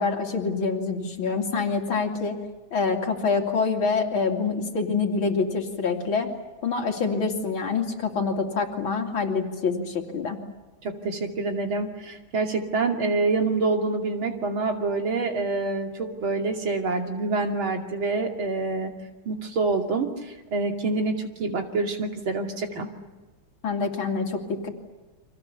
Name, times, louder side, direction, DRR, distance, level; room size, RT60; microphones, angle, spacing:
voice 1, 0.0-2.4 2.7-6.3 6.6-10.4 23.6-24.7, left 4 dB, 85° left, 2 dB, 3.4 m, -26 dB
voice 2, 10.8-18.9 19.2-22.9, right 3 dB, 85° right, 3 dB, 3.3 m, -26 dB
30.0 x 25.0 x 7.0 m, 1.2 s
omnidirectional pair, 2.2 m